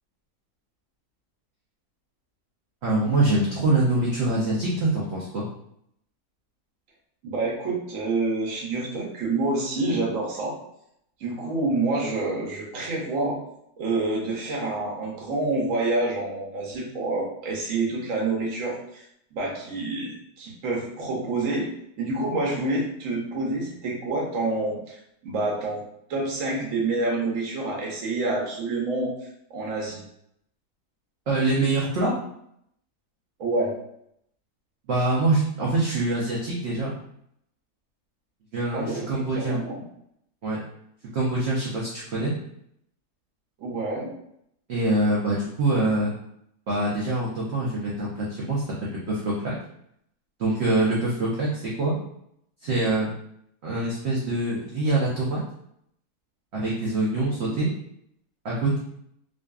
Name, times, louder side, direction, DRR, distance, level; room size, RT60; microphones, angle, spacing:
voice 1, 2.8-5.5 31.3-32.1 34.9-36.9 38.5-39.6 40.4-40.6 41.1-42.3 44.7-46.1 46.7-49.5 50.4-52.0 52.6-53.1 53.6-55.4 56.5-57.7 58.4-58.8, right 2 dB, 80° right, -4 dB, 0.5 m, -24 dB
voice 2, 7.2-10.6 11.2-13.4 13.8-19.0 19.3-21.7 22.0-25.8 26.1-29.1 29.5-30.0 33.4-33.8 38.7-39.8 43.6-44.1 57.3-57.5, right 2 dB, 65° right, -3 dB, 0.9 m, -27 dB
2.5 x 2.4 x 2.2 m, 0.74 s
omnidirectional pair, 1.7 m